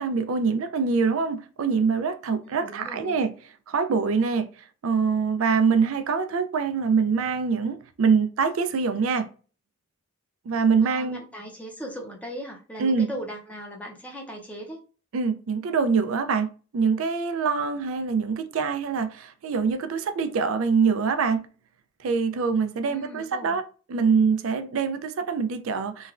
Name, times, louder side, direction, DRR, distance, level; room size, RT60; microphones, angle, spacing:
voice 1, 0.0-3.3 3.7-4.5 4.8-9.3 10.5-11.2 12.8-13.1 15.1-21.5 22.0-23.6 23.9-26.1, right 5 dB, 90° right, 0.4 m, -24 dB
voice 2, 2.4-3.2 10.8-14.8 22.8-23.6, equal, 5° left, 0.5 m, -38 dB
3.1 x 2.2 x 2.4 m
head